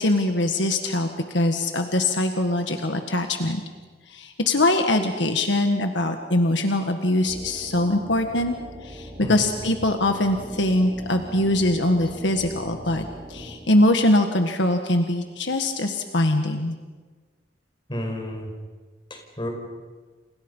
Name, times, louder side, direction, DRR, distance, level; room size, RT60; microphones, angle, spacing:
voice 1, 0.0-3.6 4.1-8.6 8.8-16.7, left 1 dB, 75° left, 5 dB, 1.6 m, -22 dB
sound 1, 7.3-13.6, equal, 35° right, 7.5 m, -41 dB
voice 2, 17.9-18.5 19.1-19.5, left 1 dB, 25° left, 2 dB, 5.4 m, -31 dB
29.5 x 29.0 x 5.6 m, 1.4 s
head